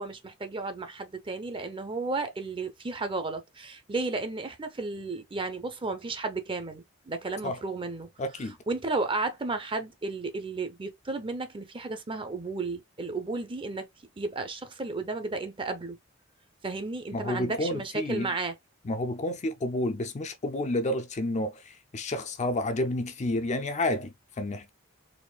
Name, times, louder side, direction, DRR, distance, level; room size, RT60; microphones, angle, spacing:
voice 1, 0.0-8.1 8.7-13.9 14.2-16.0 16.6-18.6, right 3 dB, 25° right, 0.7 m, -33 dB
voice 2, 8.2-8.6 17.1-18.3 18.8-24.7, left 1 dB, 35° left, 0.5 m, -30 dB
4.2 x 2.6 x 2.3 m
head